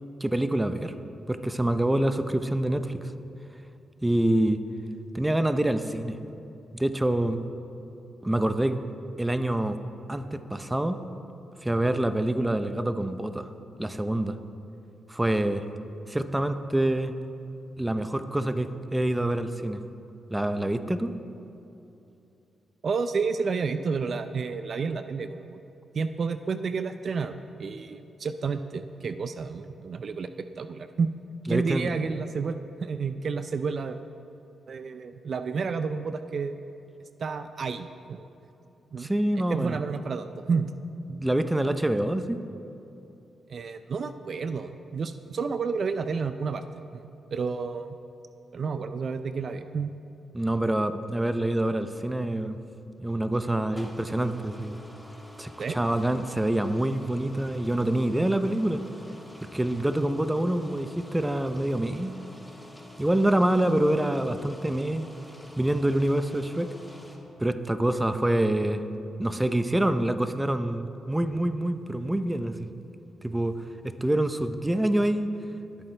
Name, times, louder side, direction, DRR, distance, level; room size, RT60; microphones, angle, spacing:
voice 1, 0.2-0.9 1.3-3.1 4.0-4.6 5.1-6.2 6.7-7.4 8.2-8.8 9.2-9.8 10.1-11.0 11.6-13.5 13.8-14.4 15.1-15.6 16.1-17.1 17.8-19.8 20.3-21.1 31.5-31.9 39.0-39.8 41.1-42.4 50.3-52.6 53.0-54.8 55.4-58.8 59.5-62.2 63.0-65.1 65.6-66.7 67.4-68.8 69.2-72.7 73.2-75.3, right 1 dB, 10° right, 10 dB, 0.6 m, -26 dB
voice 2, 22.8-25.6 25.9-30.3 30.6-31.1 31.5-34.0 34.7-36.6 37.2-38.3 38.9-39.1 39.5-40.7 43.5-47.0 47.3-48.0 48.5-49.9 55.6-55.8, right 5 dB, 55° right, 10 dB, 0.5 m, -30 dB
sound 1, 53.5-67.2, left 1 dB, 5° left, 1.8 m, -48 dB
20.5 x 8.7 x 3.4 m, 2.9 s
cardioid pair, 70°, 0 cm